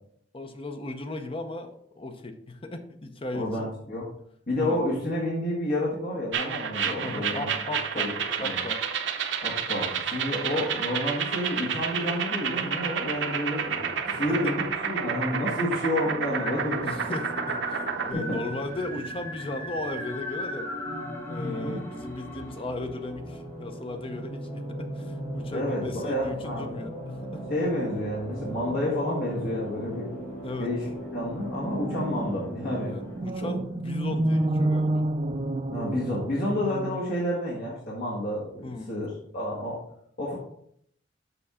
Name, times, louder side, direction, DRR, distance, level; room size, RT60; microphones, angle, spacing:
voice 1, 0.3-3.7 4.5-4.8 7.0-8.1 8.4-8.8 14.0-14.6 16.8-17.8 18.1-27.5 30.4-30.7 32.9-35.1 36.5-36.7 38.6-38.9, left 2 dB, 30° left, 7 dB, 0.7 m, -36 dB
voice 2, 3.3-4.0 4.5-7.5 7.9-8.1 8.4-8.6 9.4-17.1 18.1-18.4 21.4-21.8 25.5-26.7 27.5-30.1 30.6-33.0 33.4-33.5 35.7-39.8 40.2-40.4, left 1 dB, 55° left, -5 dB, 1.5 m, -30 dB
sound 1, 6.3-18.1, right 7 dB, 75° right, 0.7 m, -30 dB
sound 2, 16.1-33.2, equal, 10° left, 1.7 m, -38 dB
sound 3, 23.2-26.1 26.3-26.5 26.9-27.2 28.6-29.0 31.3-37.0, right 1 dB, 30° right, 0.4 m, -31 dB
7.0 x 5.3 x 3.6 m, 0.68 s
head